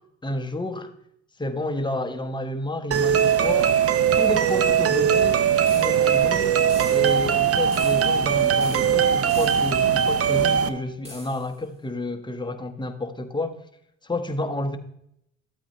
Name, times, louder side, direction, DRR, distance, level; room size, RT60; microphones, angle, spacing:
voice 1, 0.2-0.9 1.4-3.8 4.2-5.4 5.7-6.6 6.9-13.6 14.0-14.8, left 2 dB, 15° left, 1.1 m, -30 dB
sound 1, 2.9-10.7, right 8 dB, 50° right, 0.8 m, -20 dB
sound 2, 5.7-6.3 6.7-7.3 7.7-8.3 8.6-9.9 11.0-11.6, equal, 20° right, 3.2 m, -44 dB
13.0 x 8.4 x 3.1 m
cardioid pair, 90°, 30 cm